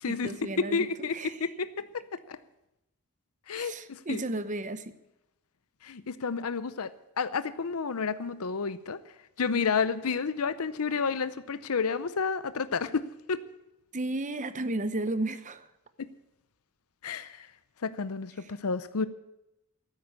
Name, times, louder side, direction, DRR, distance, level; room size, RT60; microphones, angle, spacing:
voice 1, 0.1-0.9 1.1-1.4 3.5-4.9 13.9-15.7 18.4-18.5, right 2 dB, 35° right, 12 dB, 0.9 m, -33 dB
voice 2, 0.6-2.4 3.5-4.2 5.8-6.9 7.2-9.0 9.4-13.4 16.0-16.1 17.0-17.5 17.8-19.1, left 5 dB, 80° left, 14 dB, 0.7 m, -31 dB
13.0 x 9.7 x 8.3 m, 0.89 s
head